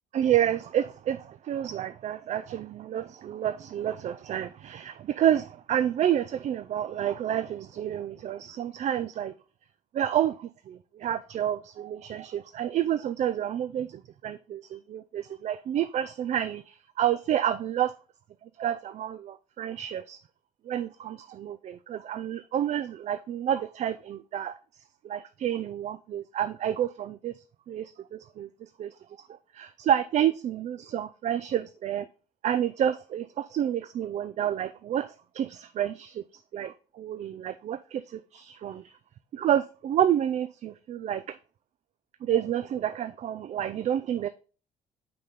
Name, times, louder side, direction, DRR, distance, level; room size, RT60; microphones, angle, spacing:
voice 1, 0.1-9.3 9.9-17.9 18.6-20.2 20.7-24.6 25.0-27.3 27.7-28.5 28.8-28.9 29.5-32.1 32.4-35.1 35.3-36.2 36.5-38.8 39.3-41.3 42.2-44.3, right 10 dB, 40° right, 0.4 m, -29 dB
5.3 x 4.2 x 5.3 m
hypercardioid pair, 55°, 18 cm